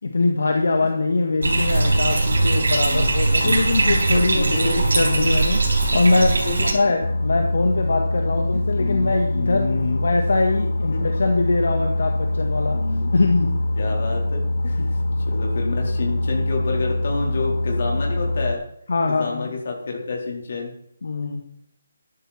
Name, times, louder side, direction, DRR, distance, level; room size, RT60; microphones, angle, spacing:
voice 1, 0.0-6.5 6.7-12.8 13.1-13.6 14.8-14.9 18.9-19.5 21.0-21.4, left 3 dB, 65° left, 3 dB, 1.8 m, -22 dB
Bathtub (filling or washing), 1.4-6.7, right 2 dB, 70° right, 6.1 m, -20 dB
voice 2, 2.8-3.9 4.4-4.8 6.4-6.8 8.8-10.0 10.9-11.0 12.7-13.1 13.4-13.5 13.8-14.8 15.2-18.6 19.1-20.7, left 4 dB, 40° left, 0 dB, 4.1 m, -29 dB
Boat Water vehicle, 7.0-18.5, left 1 dB, 85° left, 0.8 m, -24 dB
13.0 x 12.5 x 4.4 m, 0.74 s
hypercardioid pair, 175°, 0 cm